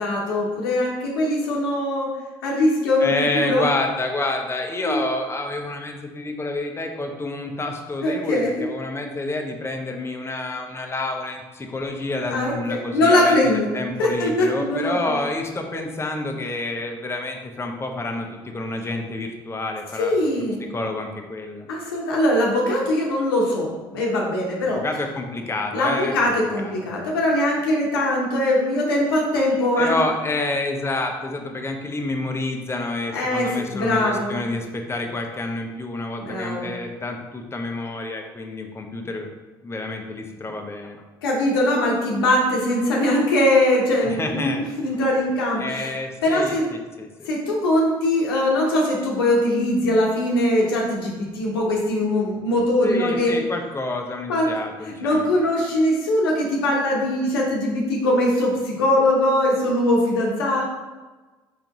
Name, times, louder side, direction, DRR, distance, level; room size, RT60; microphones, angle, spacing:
voice 1, 0.0-2.1 2.4-3.7 4.8-5.0 8.0-8.7 12.3-13.7 14.0-15.2 20.0-20.6 21.7-24.8 25.7-29.9 33.1-34.3 36.2-36.7 41.2-45.9 46.2-46.7 47.2-53.3 54.3-54.5 54.8-60.6, left 1 dB, 90° left, -2 dB, 0.9 m, -21 dB
voice 2, 3.0-21.7 24.6-27.2 29.8-39.3 39.6-41.0 44.0-44.6 45.6-47.3 52.8-55.3, left 2 dB, 20° left, 4 dB, 0.8 m, -28 dB
4.8 x 3.7 x 3.0 m, 1.2 s
hypercardioid pair, 65°, 12 cm